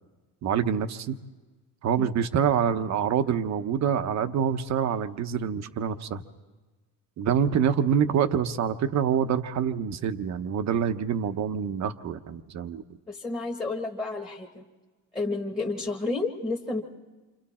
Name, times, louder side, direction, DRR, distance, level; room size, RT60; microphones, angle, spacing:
voice 1, 0.4-1.2 1.8-6.2 7.2-12.8, right 8 dB, 45° right, 10 dB, 0.9 m, -26 dB
voice 2, 13.1-14.6 15.1-16.8, left 3 dB, 10° left, -3 dB, 1.4 m, -31 dB
29.0 x 26.0 x 4.3 m, 1.3 s
cardioid pair, 155°, 39 cm